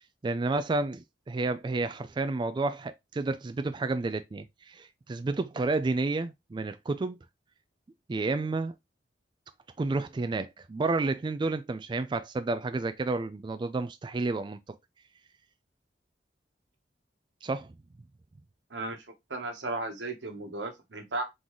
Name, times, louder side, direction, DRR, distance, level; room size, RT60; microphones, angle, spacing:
voice 1, 0.2-7.2 8.1-8.7 9.8-14.8 17.4-17.7, right 3 dB, 25° right, 0.3 m, -30 dB
voice 2, 18.7-19.0 19.3-21.2, right 2 dB, 90° right, 1.2 m, -35 dB
3.9 x 3.8 x 3.0 m
head